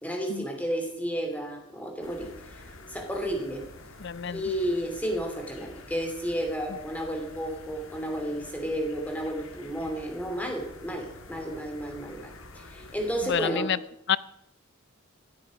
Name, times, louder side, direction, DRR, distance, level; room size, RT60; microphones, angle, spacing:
voice 1, 0.0-3.6 4.3-13.7, equal, 5° left, 4 dB, 2.7 m, -32 dB
sound 1, 2.0-13.4, left 2 dB, 70° left, 1.8 m, -48 dB
voice 2, 4.0-4.4 13.3-13.8 14.1-14.2, left 8 dB, 50° left, 18 dB, 0.5 m, -28 dB
15.5 x 13.0 x 5.0 m, 0.79 s
head